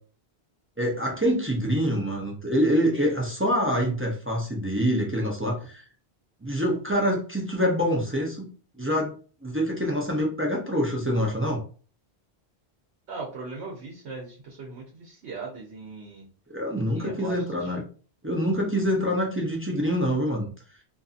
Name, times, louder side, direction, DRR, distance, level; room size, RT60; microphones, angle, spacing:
voice 1, 0.8-5.8 6.4-8.5 8.8-9.1 9.4-11.6 16.5-17.8 18.2-20.5, equal, 15° right, -2 dB, 0.5 m, -25 dB
voice 2, 13.1-16.2 16.9-17.7, right 3 dB, 90° right, -2 dB, 1.0 m, -39 dB
2.6 x 2.5 x 2.4 m, 0.39 s
omnidirectional pair, 1.1 m